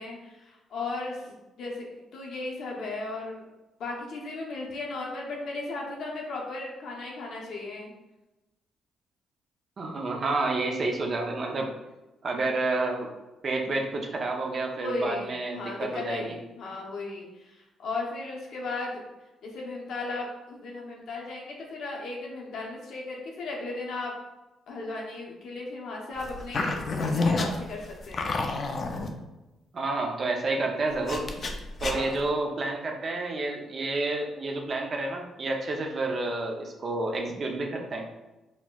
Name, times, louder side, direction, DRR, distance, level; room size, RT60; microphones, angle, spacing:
voice 1, 0.0-1.3 1.6-3.5 3.8-7.9 14.8-19.0 19.4-24.1 24.7-28.3 31.8-32.2, left 3 dB, 70° left, -2 dB, 0.7 m, -36 dB
voice 2, 9.8-11.7 12.2-13.1 13.4-16.3 29.7-31.3 31.8-38.1, right 2 dB, 45° right, 2 dB, 0.5 m, -29 dB
sound 1, 26.2-29.1 31.1-32.2, left 3 dB, 45° left, 0.4 m, -29 dB
4.1 x 2.1 x 2.3 m, 1.0 s
cardioid pair, 90°, 0 cm